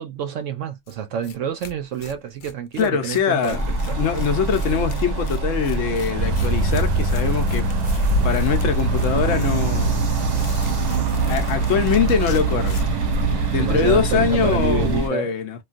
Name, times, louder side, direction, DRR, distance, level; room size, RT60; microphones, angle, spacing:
voice 1, 0.0-4.0 13.6-15.3, right 8 dB, 70° right, 0.8 m, -28 dB
Tearing, 0.9-1.0 1.2-1.4 1.6-13.0, left 4 dB, 80° left, 0.4 m, -41 dB
voice 2, 2.8-3.7 4.0-10.1 11.3-12.8 13.5-15.6, left 7 dB, 65° left, 0.9 m, -23 dB
sound 1, 3.5-15.1, right 3 dB, 35° right, 0.8 m, -27 dB
sound 2, 6.1-15.0, right 3 dB, 90° right, 1.1 m, -23 dB
3.1 x 2.3 x 2.4 m
omnidirectional pair, 1.5 m